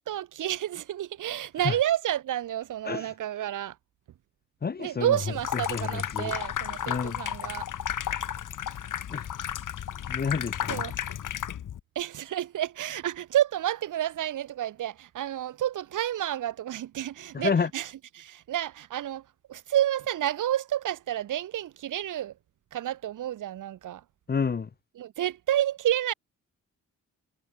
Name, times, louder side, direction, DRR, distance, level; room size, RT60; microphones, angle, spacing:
voice 1, 0.1-3.8 4.8-7.7 10.7-10.9 11.9-22.3 22.7-24.0 25.0-26.1, right 12 dB, 75° right, 0.8 m, -30 dB
voice 2, 4.6-5.2 5.7-6.4 6.9-7.2 9.1-9.3 10.1-10.8 17.3-17.7 24.3-24.7, left 5 dB, 30° left, 0.9 m, -29 dB
Water tap faucet / Sink (filling or washing), 5.3-11.8, left 10 dB, 80° left, 2.5 m, -33 dB
cardioid pair, 110°, 31 cm